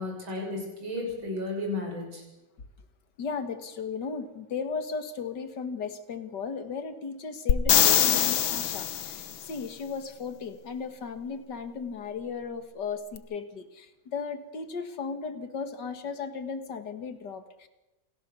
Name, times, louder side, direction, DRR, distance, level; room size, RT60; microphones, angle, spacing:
voice 1, 0.0-2.2, left 2 dB, 80° right, 0 dB, 7.7 m, -33 dB
voice 2, 3.2-17.7, left 5 dB, 60° left, 9 dB, 2.4 m, -36 dB
sound 1, 7.5-9.3 13.2-13.3, left 10 dB, 80° left, 1.8 m, -23 dB
28.5 x 16.0 x 7.1 m, 0.99 s
omnidirectional pair, 2.1 m